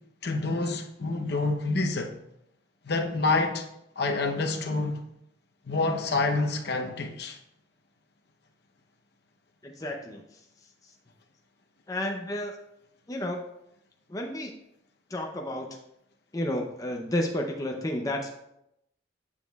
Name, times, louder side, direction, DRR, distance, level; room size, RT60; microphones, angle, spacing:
voice 1, 0.2-2.1 2.8-3.7 4.0-5.0 5.6-7.4, left 3 dB, 60° left, 0.7 m, -27 dB
voice 2, 9.6-10.4 11.9-12.6 13.1-13.4 14.1-14.5 15.1-15.7 16.3-18.3, left 1 dB, 20° left, 0.5 m, -31 dB
8.2 x 7.2 x 2.3 m
head